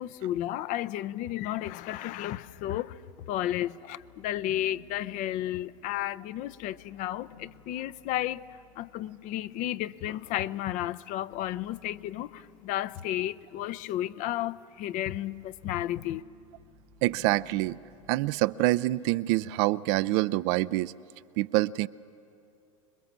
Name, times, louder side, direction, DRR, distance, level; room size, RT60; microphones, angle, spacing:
voice 1, 0.0-3.0 3.3-16.2, left 13 dB, 50° left, 0.6 m, -33 dB
sound 1, 2.4-10.8 11.3-18.3, left 5 dB, 75° left, 2.1 m, -57 dB
voice 2, 17.0-17.8 18.1-20.9 21.4-21.9, right 18 dB, 60° right, 0.5 m, -26 dB
26.5 x 22.0 x 7.4 m
hypercardioid pair, 90°, 17 cm